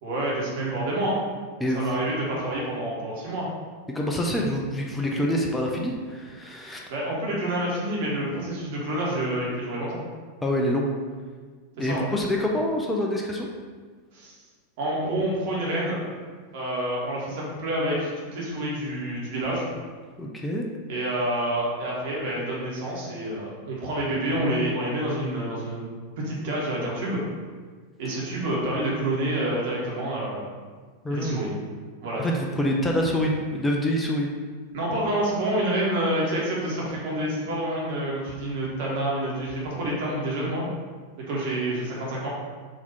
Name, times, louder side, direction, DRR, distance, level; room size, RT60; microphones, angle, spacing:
voice 1, 0.0-1.2 1.7-3.5 6.9-10.0 11.8-12.1 14.1-14.3 14.8-16.0 16.5-19.7 20.9-27.2 28.0-30.5 31.1-31.5 32.0-32.3 34.7-40.7 41.3-42.3, right 1 dB, 50° right, -5 dB, 1.3 m, -28 dB
voice 2, 1.6-2.0 3.9-6.9 10.4-10.9 11.8-13.5 20.2-20.7 31.0-31.4 32.2-34.3, left 1 dB, 10° left, -1 dB, 0.5 m, -26 dB
4.0 x 2.9 x 4.1 m, 1.5 s
figure-of-eight pair, 90°, 0 cm